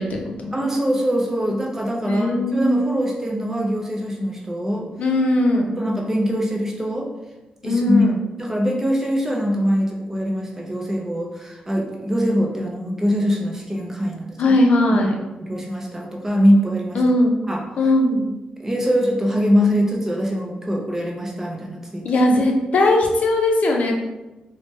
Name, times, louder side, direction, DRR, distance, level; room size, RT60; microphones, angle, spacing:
voice 1, 0.0-0.6 2.0-2.9 5.0-5.8 7.6-8.2 14.4-15.1 16.9-17.4 17.8-18.4 22.0-24.0, left 1 dB, 60° left, 2 dB, 0.5 m, -19 dB
voice 2, 0.5-4.9 5.7-7.1 7.6-8.1 8.4-14.4 14.9-15.1 15.4-17.0 17.5-17.6 18.6-22.1, equal, 15° right, -1 dB, 0.5 m, -22 dB
3.3 x 2.1 x 2.8 m, 1.0 s
wide cardioid pair, 115°, 3 cm